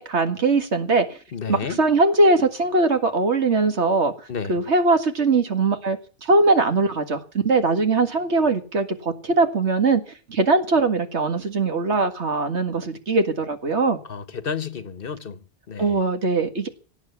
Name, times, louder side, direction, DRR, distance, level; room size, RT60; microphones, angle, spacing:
voice 1, 0.0-1.2 1.5-4.1 4.5-10.0 10.3-14.0 15.8-16.7, right 3 dB, 80° right, 2.1 m, -21 dB
voice 2, 1.3-1.8 4.3-4.6 14.1-15.4 15.7-15.9, left 6 dB, 55° left, 1.2 m, -31 dB
17.5 x 8.3 x 8.3 m
omnidirectional pair, 1.1 m